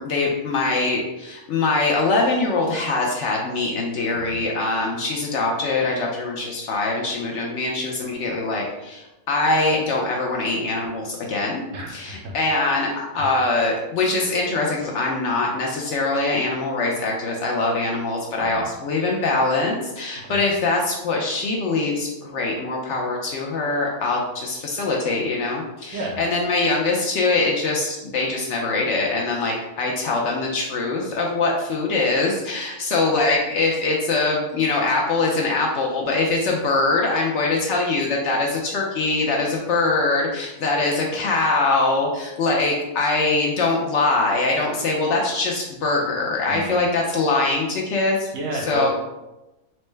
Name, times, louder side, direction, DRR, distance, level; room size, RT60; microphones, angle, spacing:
voice 1, 0.0-11.6 11.9-48.3 48.7-48.9, left 3 dB, 65° left, -1 dB, 0.8 m, -23 dB
voice 2, 4.1-4.4 11.7-12.3 13.2-13.4 18.4-18.6 20.2-20.4 25.9-26.2 46.5-46.8 48.3-48.9, right 2 dB, 70° right, -1 dB, 1.0 m, -32 dB
4.3 x 2.1 x 3.2 m, 0.99 s
omnidirectional pair, 1.5 m